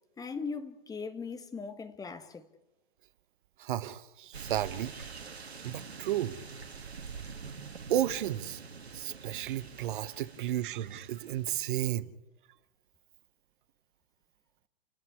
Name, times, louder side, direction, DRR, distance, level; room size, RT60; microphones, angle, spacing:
voice 1, 0.2-2.5, left 5 dB, 10° left, 1.4 m, -39 dB
voice 2, 3.6-5.1 5.6-6.4 7.9-8.6 8.9-12.1, right 12 dB, 55° right, 1.0 m, -33 dB
sound 1, 4.3-11.6, right 5 dB, 85° right, 1.7 m, -46 dB
29.5 x 11.0 x 9.8 m
hypercardioid pair, 115°, 31 cm